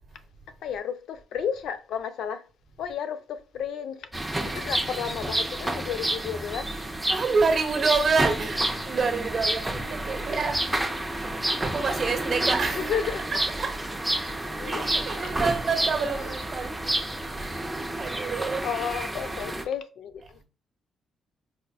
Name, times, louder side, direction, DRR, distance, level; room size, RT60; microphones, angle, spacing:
voice 1, 0.6-2.4 2.8-6.7 12.8-13.2 14.5-14.9 16.1-16.2 18.6-20.4, left 8 dB, 80° left, 0.4 m, -32 dB
sound 1, 4.1-19.6, right 1 dB, 5° right, 0.5 m, -30 dB
voice 2, 7.1-9.6 9.9-10.6 11.6-13.0 13.3-13.7 14.7-16.7 17.4-17.7 18.0-18.6, right 4 dB, 40° right, 1.0 m, -27 dB
4.3 x 2.4 x 2.3 m
cardioid pair, 125°, 0 cm